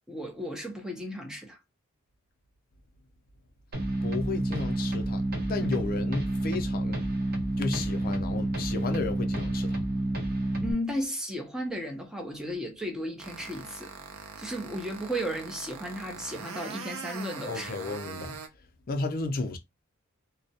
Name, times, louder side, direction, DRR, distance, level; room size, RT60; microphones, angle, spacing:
voice 1, 0.1-1.6 10.6-13.9 14.4-17.8, equal, 5° right, 0.5 m, -34 dB
sound 1, 3.7-10.7, right 1 dB, 45° right, 0.7 m, -29 dB
voice 2, 4.0-7.0 7.6-9.8 17.5-18.4 18.9-19.6, left 3 dB, 45° left, 0.5 m, -33 dB
sound 2, 13.2-18.5, right 5 dB, 85° right, 0.6 m, -42 dB
2.3 x 2.0 x 2.7 m
head